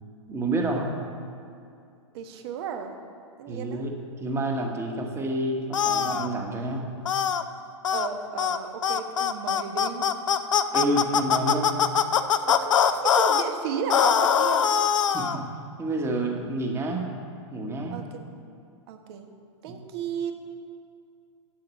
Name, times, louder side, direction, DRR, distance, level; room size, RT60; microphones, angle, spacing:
voice 1, 0.3-1.0 3.5-7.0 10.7-11.8 15.1-15.5 15.8-17.1 17.5-18.0 19.6-19.8, right 2 dB, 15° right, 2 dB, 1.4 m, -29 dB
voice 2, 2.1-3.0 3.4-3.8 7.9-10.1 12.5-12.8 13.0-14.7 17.9-18.2 18.9-19.2 19.6-20.3, right 7 dB, 55° right, 5 dB, 1.2 m, -34 dB
sound 1, 5.7-6.3 7.1-7.4 7.8-8.1 8.4-8.6 8.8-13.4 13.9-15.4, left 8 dB, 80° left, 0.6 m, -22 dB
7.9 x 7.7 x 7.5 m, 2.5 s
hypercardioid pair, 115°, 16 cm